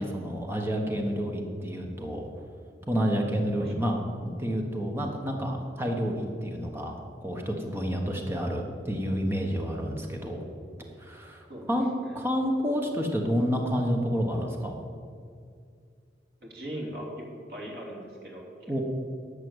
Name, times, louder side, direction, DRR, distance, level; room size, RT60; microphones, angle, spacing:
voice 1, 0.0-2.3 2.9-10.4 11.0-11.9 12.1-14.7 18.7-18.8, equal, 15° right, 1 dB, 1.3 m, -29 dB
voice 2, 16.4-17.2 17.5-18.5, equal, 60° right, -2 dB, 3.0 m, -39 dB
11.5 x 6.9 x 8.1 m, 2.3 s
head